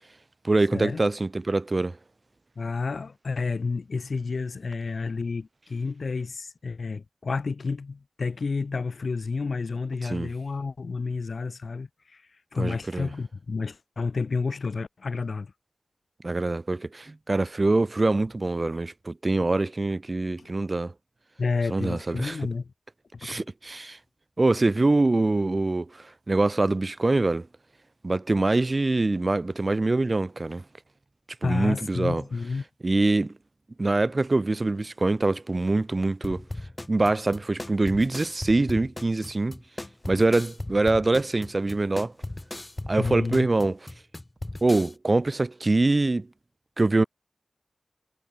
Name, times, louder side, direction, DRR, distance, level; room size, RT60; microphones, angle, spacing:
voice 1, 0.4-2.0 10.0-10.3 12.6-13.1 16.2-20.9 21.7-22.4 23.2-24.0 24.4-27.5 28.0-30.6 31.4-32.2 32.8-33.3 33.8-36.4 36.9-39.6 40.1-42.1 42.9-43.8 44.6-46.3 46.8-47.0, right 2 dB, 45° right, 0.9 m, -24 dB
voice 2, 2.6-12.2 12.5-15.5 20.4-20.5 21.4-22.7 23.2-23.4 31.4-32.6 43.0-43.5, left 4 dB, 85° left, 4.2 m, -30 dB
sound 1, 36.2-44.9, left 1 dB, 25° left, 5.7 m, -37 dB
wide cardioid pair, 70°, 0 cm